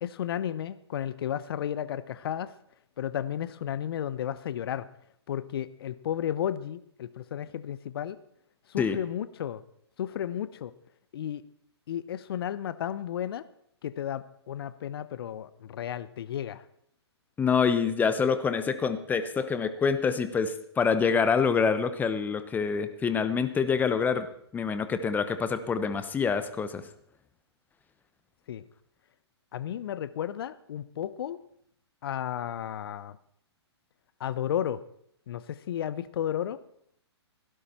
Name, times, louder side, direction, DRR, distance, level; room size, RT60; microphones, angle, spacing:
voice 1, 0.0-2.5 3.0-4.9 5.3-8.2 8.7-9.6 10.0-10.7 11.1-11.4 11.9-13.4 13.8-16.6 28.5-28.6 29.5-31.4 32.0-33.2 34.2-34.8 35.3-36.6, left 10 dB, 55° left, 16 dB, 0.8 m, -33 dB
voice 2, 17.4-24.3 24.5-26.8, left 6 dB, 10° left, 11 dB, 0.8 m, -26 dB
16.5 x 11.5 x 4.4 m, 0.69 s
hypercardioid pair, 130°, 14 cm